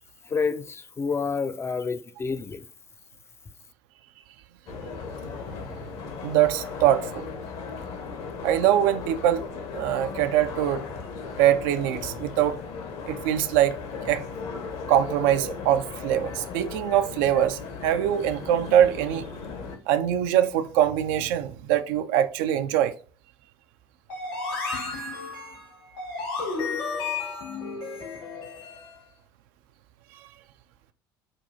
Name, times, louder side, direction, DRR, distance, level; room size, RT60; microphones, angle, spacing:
voice 1, 0.3-2.7, left 5 dB, 20° left, 0.4 m, -29 dB
sound 1, 4.7-19.8, left 5 dB, 55° left, 0.9 m, -37 dB
voice 2, 6.2-7.2 8.4-9.4 9.7-10.8 11.4-12.6 13.1-13.8 14.0-14.2 14.9-19.3 19.9-22.9, right 11 dB, 65° right, 0.4 m, -23 dB
sound 2, 24.1-29.0, left 4 dB, 75° left, 1.9 m, -33 dB
5.1 x 2.3 x 2.6 m
hypercardioid pair, 65°, 12 cm